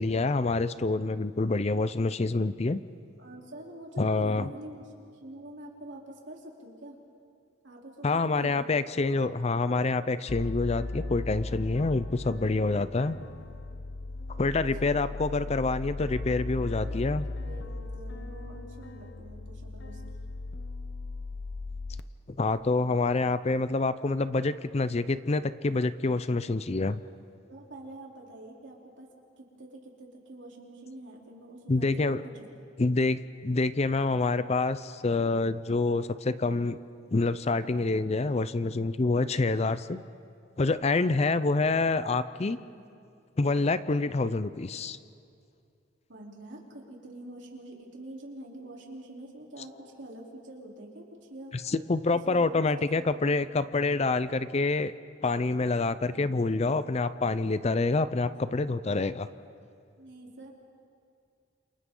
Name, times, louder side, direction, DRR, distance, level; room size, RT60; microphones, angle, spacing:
voice 1, 0.0-2.8 4.0-4.5 8.0-13.2 14.4-17.2 22.3-27.0 31.7-32.2 32.8-36.8 37.1-40.0 40.6-42.6 43.4-45.0 51.7-54.9 55.2-59.3, left 3 dB, 35° left, 14 dB, 0.5 m, -27 dB
voice 2, 3.2-7.0 7.6-8.6 14.8-15.6 16.8-20.0 27.5-29.1 29.4-32.5 46.1-51.5 52.3-52.7 52.9-53.7 58.2-59.0 60.0-60.5, right 1 dB, 65° right, -2 dB, 3.5 m, -46 dB
sound 1, 10.3-22.0, left 2 dB, 60° left, 0.8 m, -37 dB
29.5 x 28.0 x 3.8 m, 2.5 s
head